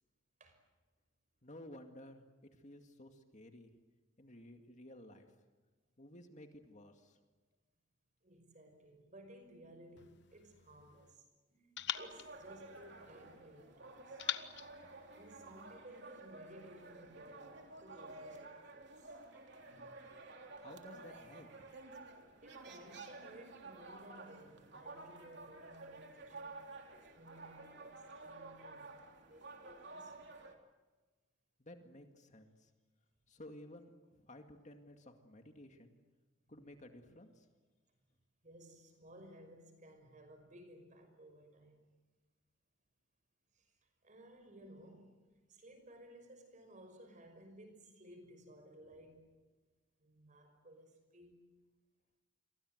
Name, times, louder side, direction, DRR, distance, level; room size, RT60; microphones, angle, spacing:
voice 1, 1.4-2.2 2.5-3.7 4.2-5.3 6.0-7.2 20.6-21.7 31.6-32.7 33.3-36.0 36.5-37.5, left 1 dB, 40° left, 2.2 m, -55 dB
voice 2, 8.2-14.2 15.1-19.2 22.4-26.8 27.0-30.2 38.4-41.8 43.5-45.2 45.5-49.3 50.0-51.4, right 1 dB, 40° right, 5.7 m, -58 dB
sound 1, 10.0-11.2 11.8-13.4 14.2-15.8, left 10 dB, 60° left, 1.2 m, -45 dB
sound 2, 11.9-30.5, right 3 dB, 60° right, 3.4 m, -52 dB
29.5 x 23.5 x 8.0 m
head